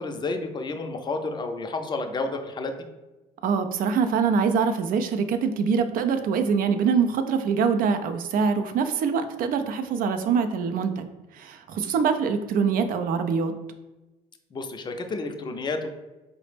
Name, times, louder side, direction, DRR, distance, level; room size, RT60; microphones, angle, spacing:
voice 1, 0.0-2.9 14.5-15.9, left 3 dB, 30° left, 5 dB, 0.4 m, -31 dB
voice 2, 3.4-11.1 11.3-13.5, right 6 dB, 65° right, 8 dB, 0.4 m, -24 dB
4.1 x 2.0 x 3.2 m, 1.1 s
supercardioid pair, 70°, 16 cm